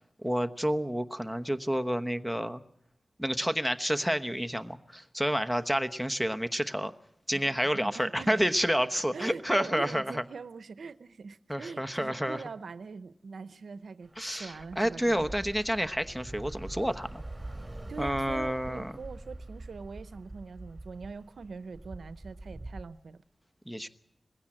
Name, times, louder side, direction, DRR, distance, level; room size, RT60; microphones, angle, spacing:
voice 1, 0.2-2.6 3.2-6.9 7.3-10.2 11.5-12.4 14.2-17.2 18.0-18.9 23.7-23.9, equal, 5° left, 9 dB, 1.0 m, -29 dB
voice 2, 7.3-8.4 9.1-15.2 17.9-23.2, right 4 dB, 90° right, 14 dB, 0.7 m, -43 dB
Bus / Traffic noise roadway noise, 14.0-22.8, right 2 dB, 15° right, 3.7 m, -44 dB
20.5 x 16.0 x 8.8 m, 0.76 s
wide cardioid pair, 75°, 0 cm